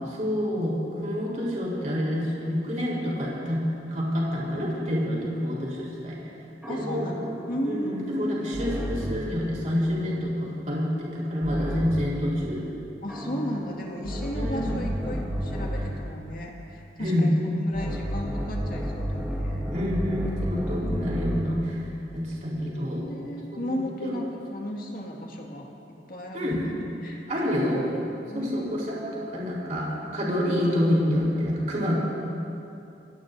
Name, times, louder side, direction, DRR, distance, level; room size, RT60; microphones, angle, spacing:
voice 1, 0.1-0.8 1.0-6.2 6.7-7.1 7.6-12.6 14.4-14.8 17.0-17.4 19.7-21.8 22.1-23.1 23.5-24.1 26.3-26.6 27.3-27.8 28.3-31.9, equal, 45° right, -5 dB, 4.0 m, -27 dB
sound 1, 6.6-9.4 11.4-12.2 13.1-16.1 17.7-21.6, equal, 10° right, 1.7 m, -32 dB
voice 2, 6.7-7.1 7.5-8.0 13.0-19.7 20.8-21.4 22.5-22.6 22.9-25.7 26.1-26.7 27.0-27.6 28.3-28.8, equal, 50° left, -1 dB, 2.1 m, -35 dB
26.5 x 16.5 x 2.7 m, 2.7 s
head